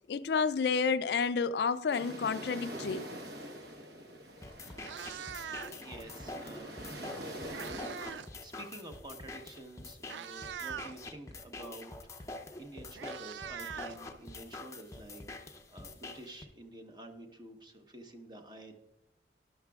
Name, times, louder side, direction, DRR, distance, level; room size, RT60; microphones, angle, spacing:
voice 1, 0.1-3.1, left 5 dB, 65° left, 0.4 m, -30 dB
sound 1, 1.9-8.2, equal, 65° right, 1.2 m, -44 dB
Meow, 4.2-4.3 4.7-6.0 7.0-8.4 8.6-8.9 9.6-9.7 10.0-11.0 12.3-12.4 12.6-14.5, right 8 dB, 85° right, 0.4 m, -43 dB
sound 2, 4.4-16.4, left 2 dB, 15° left, 0.6 m, -46 dB
voice 2, 5.4-6.8 8.4-12.3 12.6-18.7, right 1 dB, 25° right, 1.0 m, -50 dB
13.0 x 11.0 x 2.4 m
head